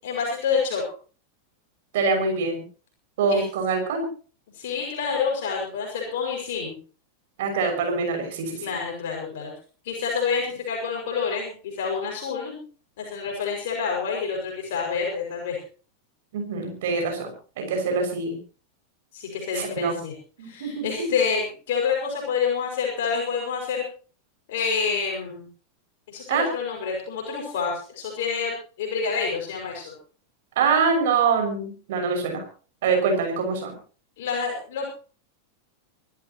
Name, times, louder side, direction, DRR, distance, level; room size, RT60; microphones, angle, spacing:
voice 1, 0.0-0.8 3.3-3.4 4.5-6.7 8.6-9.5 9.8-12.6 13.0-15.6 19.1-20.1 20.4-23.8 24.5-25.5 26.1-28.5 28.8-30.0 34.2-34.9, left 6 dB, 55° left, -1 dB, 5.9 m, -28 dB
voice 2, 1.9-2.6 3.2-4.1 7.4-8.7 16.3-17.3 17.6-18.4 19.5-20.0 20.4-21.1 26.3-26.4 30.6-32.4 32.8-33.7, right 5 dB, 55° right, 3 dB, 6.3 m, -24 dB
26.0 x 14.0 x 3.0 m, 0.39 s
figure-of-eight pair, 90°, 0 cm